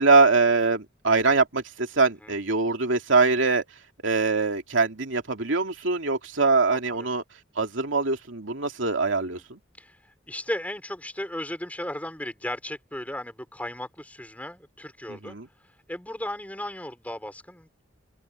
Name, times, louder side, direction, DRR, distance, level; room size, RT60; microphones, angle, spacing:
voice 1, 0.0-3.6 4.0-7.2 7.6-9.6 15.1-15.4, right 3 dB, 80° right, 2.7 m, -23 dB
voice 2, 6.7-7.1 9.3-9.4 9.8-15.4 15.9-17.8, left 1 dB, 10° left, 5.8 m, -36 dB
head